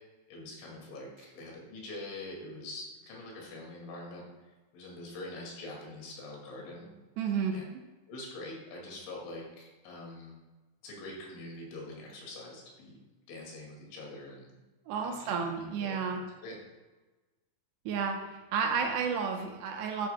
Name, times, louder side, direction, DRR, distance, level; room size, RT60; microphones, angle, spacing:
voice 1, 0.3-4.2 4.7-6.9 7.5-7.6 8.1-10.3 10.8-13.0 13.3-14.5 15.0-16.6, left 2 dB, 85° left, -2 dB, 4.8 m, -44 dB
voice 2, 7.2-7.5 14.9-16.2 17.9-18.2 18.5-20.1, right 6 dB, 75° right, 3 dB, 2.9 m, -31 dB
14.0 x 9.0 x 2.3 m, 1.2 s
omnidirectional pair, 5.3 m